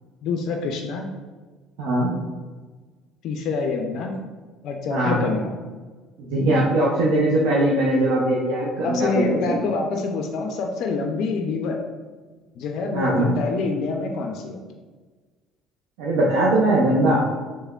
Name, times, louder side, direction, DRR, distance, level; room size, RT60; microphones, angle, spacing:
voice 1, 0.2-1.1 3.2-4.1 4.6-5.5 8.8-11.8 12.6-14.6, left 4 dB, 60° left, 3 dB, 0.3 m, -26 dB
voice 2, 1.8-2.1 4.9-5.2 6.2-9.6 12.9-13.3 16.0-17.3, right 1 dB, 75° right, -5 dB, 0.4 m, -20 dB
3.3 x 3.0 x 2.2 m, 1.4 s
hypercardioid pair, 60°, 0 cm